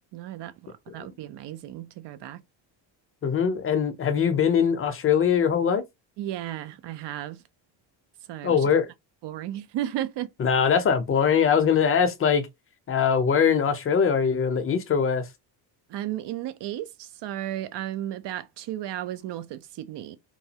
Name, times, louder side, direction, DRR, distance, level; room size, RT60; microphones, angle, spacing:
voice 1, 0.1-2.4 6.2-7.4 8.3-8.7 9.2-10.3 15.9-20.2, right 12 dB, 65° right, 0.5 m, -34 dB
voice 2, 3.2-5.8 8.4-8.9 10.4-12.5 12.9-15.2, left 7 dB, 30° left, 0.5 m, -22 dB
2.9 x 2.3 x 2.8 m
cardioid pair, 115°, 46 cm